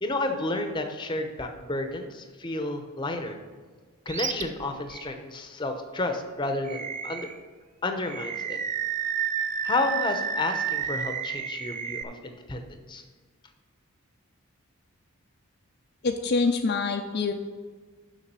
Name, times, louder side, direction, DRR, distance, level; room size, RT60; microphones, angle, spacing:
voice 1, 0.0-3.4 4.1-7.3 7.8-8.6 9.6-13.0, left 2 dB, 20° left, 6 dB, 0.8 m, -31 dB
Animal, 4.1-4.4 4.9-5.1 6.7-7.4 8.1-12.0, right 7 dB, 35° right, 0.4 m, -31 dB
voice 2, 16.0-17.3, left 4 dB, 50° left, 4 dB, 0.5 m, -25 dB
7.2 x 5.8 x 6.8 m, 1.5 s
head